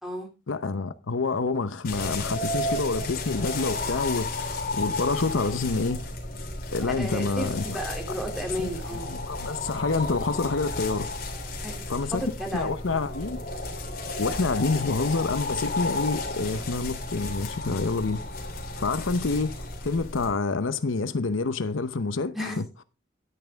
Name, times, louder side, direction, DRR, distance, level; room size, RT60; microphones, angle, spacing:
voice 1, 0.5-6.1 6.7-7.8 8.6-11.1 11.9-13.4 14.2-18.2 18.8-22.8, left 3 dB, 85° left, 0.8 m, -28 dB
sound 1, 1.8-20.3, left 2 dB, 50° left, 3.2 m, -33 dB
voice 2, 6.9-7.5 7.7-9.1 11.6-11.7 12.1-12.7 22.3-22.6, equal, ahead, 2.7 m, -32 dB
10.5 x 9.9 x 3.5 m
head